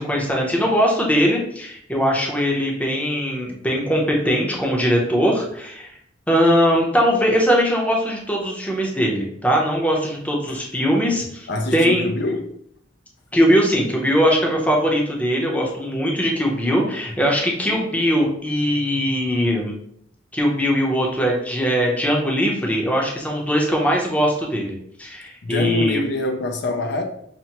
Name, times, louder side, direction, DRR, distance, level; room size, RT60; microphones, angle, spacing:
voice 1, 0.0-5.9 6.3-12.0 13.3-19.7 20.3-26.0, equal, 10° left, 0.7 m, -20 dB
voice 2, 11.5-12.5 25.4-27.0, left 2 dB, 65° left, 0.5 m, -25 dB
5.7 x 2.1 x 2.9 m
head